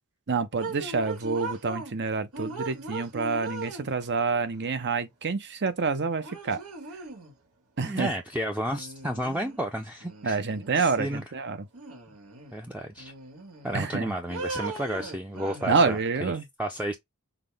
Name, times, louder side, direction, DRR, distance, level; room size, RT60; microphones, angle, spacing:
voice 1, 0.3-6.6 7.8-8.1 10.2-11.7 13.7-14.1 15.6-16.4, right 4 dB, 55° right, 0.8 m, -27 dB
sound 1, 0.6-2.0 2.3-4.2 5.7-5.8 6.2-7.4 8.7-9.7 10.0-11.2 11.7-12.6 13.0-13.9 14.3-16.1, right 3 dB, 80° right, 1.7 m, -39 dB
voice 2, 7.8-10.4 10.7-11.2 12.5-13.1 13.6-16.3 16.6-17.0, equal, 5° right, 0.6 m, -32 dB
5.9 x 2.2 x 3.5 m
head